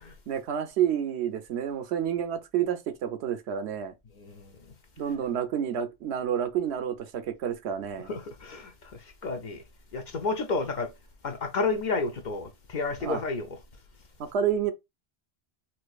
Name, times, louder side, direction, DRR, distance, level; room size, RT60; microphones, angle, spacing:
voice 1, 0.3-3.9 5.0-8.1 13.0-13.2 14.2-14.7, right 9 dB, 80° right, 0.9 m, -29 dB
voice 2, 4.2-4.5 8.1-8.7 9.2-9.6 9.9-10.9 11.2-13.5, left 3 dB, 55° left, 0.6 m, -31 dB
4.4 x 2.6 x 2.3 m
omnidirectional pair, 1.1 m